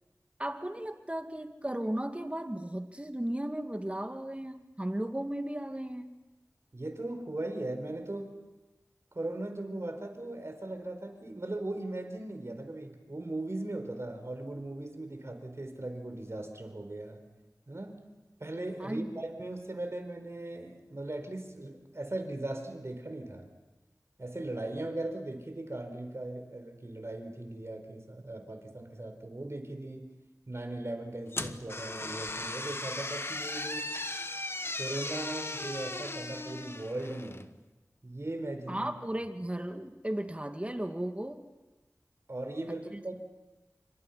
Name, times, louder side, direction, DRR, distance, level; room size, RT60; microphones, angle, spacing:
voice 1, 0.4-6.1 18.8-19.2 38.7-41.4 42.9-43.0, right 1 dB, 20° right, 6 dB, 2.2 m, -35 dB
voice 2, 6.7-8.3 9.1-17.2 17.7-18.0 18.4-23.5 24.2-30.1 30.5-34.0 34.8-37.5 38.0-38.9 42.3-43.2, right 2 dB, 50° right, 6 dB, 4.5 m, -38 dB
sound 1, 31.3-37.5, left 2 dB, 40° left, 1.2 m, -37 dB
29.0 x 25.5 x 5.7 m, 1.1 s
wide cardioid pair, 45°, 6 cm